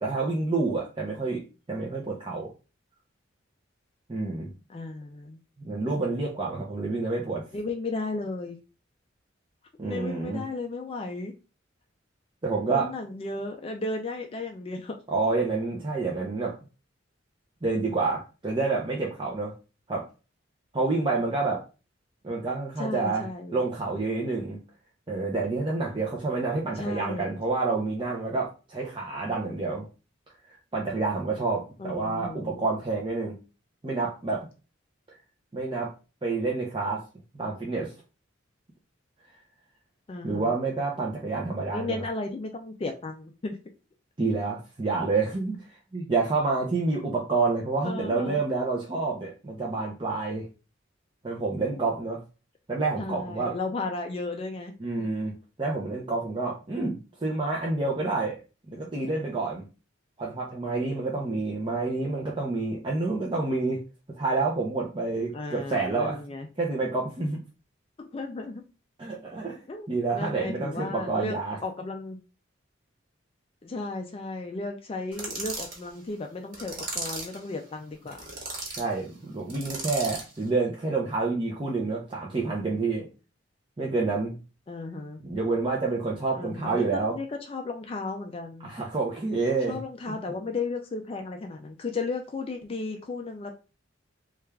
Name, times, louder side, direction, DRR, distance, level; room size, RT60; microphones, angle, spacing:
voice 1, 0.0-1.4 1.7-2.5 4.1-4.5 5.6-7.4 9.8-10.4 12.4-12.9 15.1-16.5 17.6-19.5 19.9-20.0 20.7-21.6 22.2-23.2 23.5-24.6 25.1-29.9 30.7-33.4 33.8-34.5 35.5-35.9 36.2-37.0 37.3-37.9 40.2-42.0 44.2-45.7 45.9-50.5 51.2-52.2 52.7-53.5 54.8-55.3 55.6-58.4 58.7-59.6 60.2-63.8 64.2-66.2 66.6-67.4 69.0-69.6 69.9-71.6 78.8-83.1 83.8-84.4 85.2-87.1 88.6-89.8 90.1-90.2, right 3 dB, 25° right, -3 dB, 0.5 m, -28 dB
voice 2, 4.7-5.4 7.5-8.6 9.9-11.3 12.7-15.0 22.8-23.6 26.7-27.4 31.8-32.6 40.1-40.6 41.7-43.6 47.8-48.4 53.0-54.7 65.3-66.5 68.0-68.6 69.7-71.4 71.6-72.2 73.6-78.2 84.7-85.2 86.3-88.7 89.7-93.5, left 3 dB, 30° left, 4 dB, 0.3 m, -34 dB
sound 1, 75.1-75.8 76.5-77.4 78.1-78.8 79.5-80.3, right 3 dB, 45° right, 1.2 m, -35 dB
3.2 x 2.4 x 3.3 m, 0.32 s
head